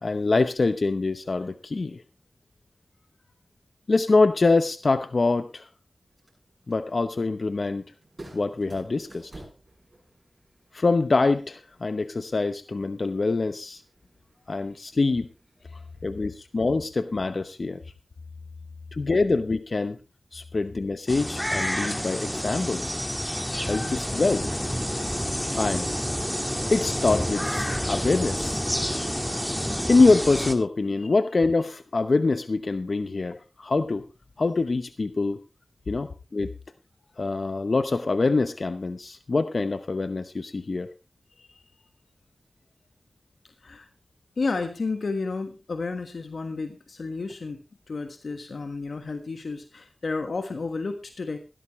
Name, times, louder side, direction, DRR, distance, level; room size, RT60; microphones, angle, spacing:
voice 1, 0.0-2.0 3.9-5.7 6.7-7.8 8.3-9.3 10.7-13.8 14.5-15.3 16.0-17.8 18.9-20.0 20.3-22.8 23.6-24.5 25.5-25.9 26.7-28.6 29.9-34.0 34.4-35.4 35.9-36.5 37.2-40.9, left 3 dB, 65° left, 11 dB, 0.8 m, -24 dB
sound 1, 6.0-16.6, right 1 dB, 45° right, 8.0 m, -53 dB
sound 2, 21.1-30.5, equal, 5° left, 1.8 m, -29 dB
voice 2, 44.4-47.6 47.9-51.4, left 3 dB, 85° left, 7 dB, 1.4 m, -32 dB
16.0 x 12.5 x 3.2 m, 0.28 s
cardioid pair, 45°, 0 cm